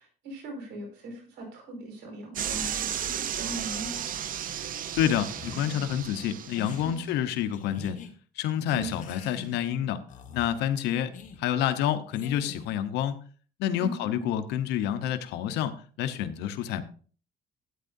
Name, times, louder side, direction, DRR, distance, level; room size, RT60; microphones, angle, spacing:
voice 1, 0.0-3.9 6.8-6.9 8.7-8.9 13.8-14.3, right 2 dB, 90° right, 2 dB, 5.0 m, -40 dB
sound 1, 2.4-6.9, right 9 dB, 55° right, 0.8 m, -34 dB
voice 2, 4.9-8.0 8.4-10.0 10.3-11.1 11.4-13.2 13.6-16.8, left 10 dB, 85° left, 10 dB, 1.0 m, -28 dB
sound 2, 5.4-6.0 6.5-6.9 7.5-8.1 8.7-9.7 10.1-10.5 11.1-11.4 12.1-12.7, left 4 dB, 50° left, 1.6 m, -43 dB
12.5 x 9.4 x 2.7 m, 0.41 s
cardioid pair, 110°, 17 cm